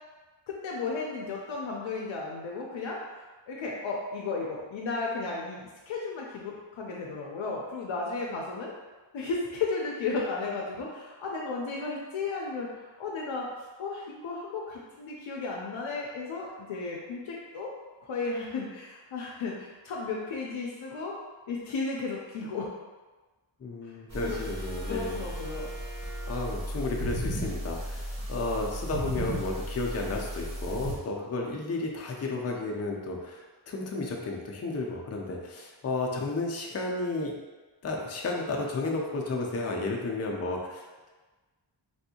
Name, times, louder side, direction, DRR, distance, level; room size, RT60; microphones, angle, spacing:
voice 1, 0.5-8.7 9.1-13.5 13.8-17.7 18.1-21.2 21.5-22.7 23.8-23.9 24.2-24.4 24.8-25.7, left 4 dB, 80° left, -3 dB, 0.6 m, -34 dB
voice 2, 23.6-25.3 26.2-37.3 37.8-41.1, left 2 dB, 35° left, 0 dB, 0.4 m, -33 dB
sound 1, 24.1-31.0, equal, 35° right, 1.1 m, -35 dB
3.4 x 2.6 x 2.7 m, 1.3 s
wide cardioid pair, 135°, 47 cm